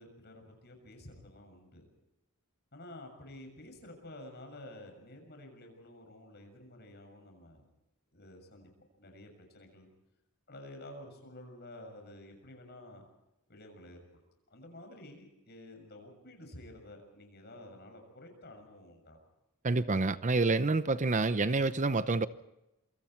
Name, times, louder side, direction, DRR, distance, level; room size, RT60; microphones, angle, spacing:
voice 1, 0.0-1.8 2.7-7.7 8.1-8.7 9.0-9.9 10.5-13.1 13.5-14.0 14.5-19.2, left 1 dB, 50° left, 6.9 m, -51 dB
voice 2, 19.6-22.3, right 3 dB, 35° right, 0.7 m, -28 dB
27.5 x 25.0 x 4.5 m
head